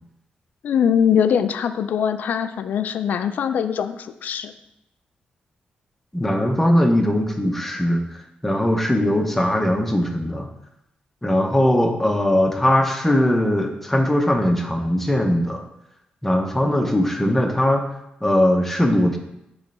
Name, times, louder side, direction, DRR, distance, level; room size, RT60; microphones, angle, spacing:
voice 1, 0.6-4.5, left 8 dB, 70° left, 10 dB, 0.4 m, -22 dB
voice 2, 6.1-10.5 11.2-15.6 16.2-17.8 18.2-19.2, left 1 dB, 10° left, 3 dB, 0.7 m, -20 dB
7.2 x 3.2 x 5.3 m, 0.85 s
wide cardioid pair, 140°, 3 cm